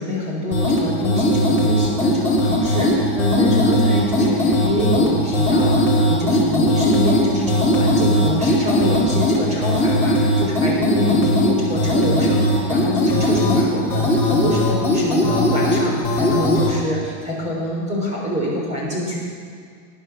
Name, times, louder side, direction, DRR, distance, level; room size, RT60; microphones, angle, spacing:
voice 1, 0.0-19.2, left 1 dB, 15° right, -3 dB, 3.7 m, -25 dB
sound 1, 0.5-16.7, left 1 dB, 5° left, 2.5 m, -19 dB
18.5 x 10.0 x 6.0 m, 2.1 s
supercardioid pair, 175°, 48 cm